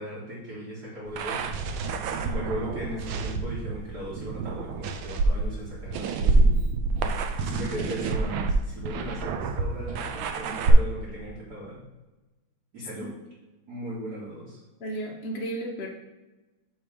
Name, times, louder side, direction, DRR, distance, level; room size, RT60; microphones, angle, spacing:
voice 1, 0.0-1.7 2.2-6.5 7.4-11.9 12.7-13.1 13.7-14.6, right 1 dB, 50° right, -8 dB, 1.9 m, -37 dB
sound 1, 1.1-10.7, right 3 dB, 75° right, 1.3 m, -27 dB
voice 2, 14.8-15.9, right 1 dB, 70° left, 0 dB, 0.5 m, -33 dB
6.1 x 3.3 x 5.1 m, 1.1 s
omnidirectional pair, 2.3 m